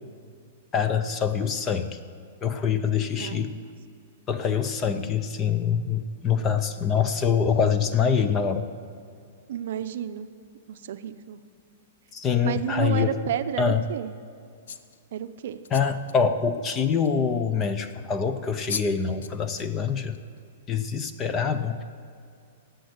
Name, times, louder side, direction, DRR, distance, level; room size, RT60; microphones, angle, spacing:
voice 1, 0.7-2.0 2.4-3.6 4.3-8.7 12.1-13.1 13.6-13.9 15.7-20.2 20.7-21.8, left 6 dB, 15° left, 10 dB, 0.5 m, -25 dB
voice 2, 3.2-3.7 9.5-10.3 10.7-11.4 12.4-14.1 15.1-15.6, right 10 dB, 55° right, 11 dB, 0.6 m, -31 dB
sound 1, 14.7-15.0 15.6-16.2 17.0-17.1 18.3-18.4 18.7-18.9 19.2-19.7 20.1-20.4, left 6 dB, 75° left, 0.7 m, -36 dB
18.0 x 7.8 x 8.1 m, 2.3 s
supercardioid pair, 175°, 0 cm